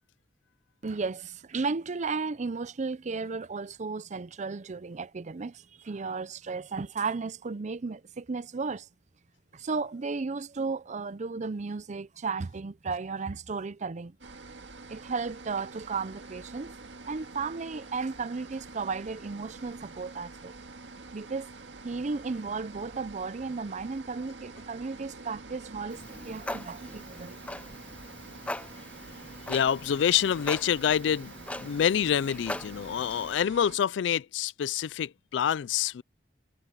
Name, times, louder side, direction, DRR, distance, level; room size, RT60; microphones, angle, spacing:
voice 1, 0.8-8.9 9.5-14.2 14.9-16.7 17.0-20.5 21.1-21.5 21.8-27.4, right 4 dB, 40° right, 0.5 m, -34 dB
sound 1, 14.2-33.8, right 3 dB, 80° right, 1.9 m, -47 dB
Clock, 25.9-33.3, left 1 dB, 5° left, 0.5 m, -41 dB
voice 2, 29.5-31.3 31.6-36.0, left 8 dB, 75° left, 0.3 m, -27 dB
head